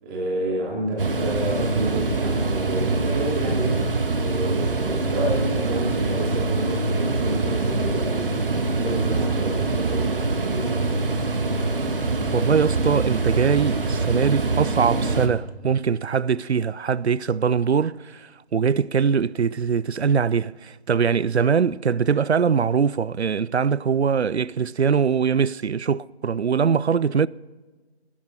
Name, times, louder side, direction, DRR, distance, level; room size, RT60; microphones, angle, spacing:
voice 1, 0.0-3.9 4.2-10.8, right 1 dB, 15° right, 3.1 m, -29 dB
sound 1, 1.0-15.3, right 3 dB, 55° right, 1.6 m, -24 dB
voice 2, 12.3-27.3, right 6 dB, 75° right, 0.5 m, -22 dB
14.5 x 13.5 x 4.2 m
figure-of-eight pair, 145°, 33 cm